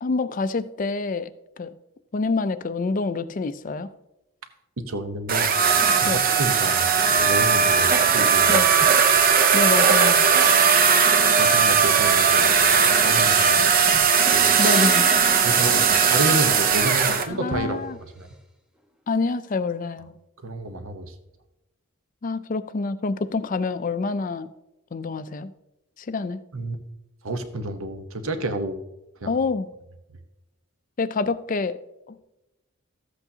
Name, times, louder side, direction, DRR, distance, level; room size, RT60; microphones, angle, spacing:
voice 1, 0.0-1.3 1.6-1.7 2.1-3.9 6.1-6.2 8.5-8.7 9.5-10.3 14.6-15.1 17.1-18.0 19.1-20.1 22.2-24.5 24.9-25.5 26.0-26.4 29.3-29.7 31.0-31.7 32.1-32.2, left 3 dB, 40° left, 13 dB, 0.4 m, -26 dB
voice 2, 4.8-5.5 6.0-8.5 11.4-13.6 14.3-14.6 15.4-18.3 20.4-21.1 26.5-26.8 27.2-28.8 29.2-29.4, right 1 dB, 70° right, 8 dB, 1.0 m, -30 dB
sound 1, 5.3-17.3, right 6 dB, 40° right, 0.6 m, -18 dB
sound 2, 7.0-17.3, right 1 dB, 20° right, 1.8 m, -38 dB
sound 3, 14.3-17.6 19.1-19.2, equal, 5° right, 0.6 m, -37 dB
13.5 x 8.1 x 2.8 m, 0.94 s
head